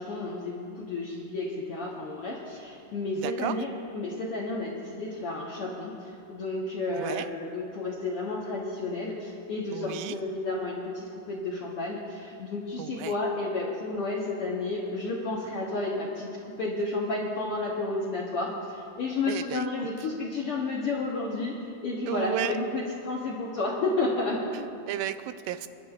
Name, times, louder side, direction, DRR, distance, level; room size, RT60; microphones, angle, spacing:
voice 1, 0.0-3.7 3.9-16.3 16.6-21.6 21.8-24.4, left 2 dB, 70° left, -3 dB, 1.4 m, -31 dB
voice 2, 3.2-3.6 6.9-7.3 9.7-10.2 12.8-13.2 19.3-19.9 22.1-22.5 24.5-25.7, right 12 dB, 85° right, 11 dB, 2.2 m, -33 dB
28.5 x 11.5 x 2.4 m, 2.6 s
omnidirectional pair, 3.9 m